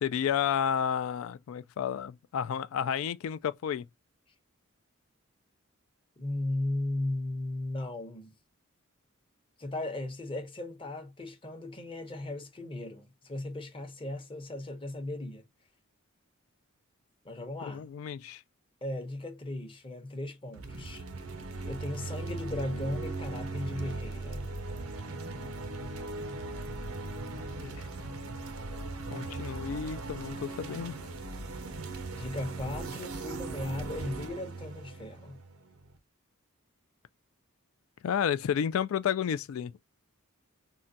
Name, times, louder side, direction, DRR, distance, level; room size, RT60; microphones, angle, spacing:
voice 1, 0.0-3.9 17.7-18.4 27.5-27.9 29.1-31.0 38.0-39.7, left 8 dB, 70° left, 0.3 m, -31 dB
voice 2, 6.2-8.3 9.6-15.4 17.2-17.9 18.8-21.0 21.6-24.5 32.1-35.4, left 2 dB, 25° left, 0.7 m, -36 dB
sound 1, 20.5-36.0, right 3 dB, 80° right, 0.6 m, -39 dB
3.7 x 2.2 x 2.6 m
head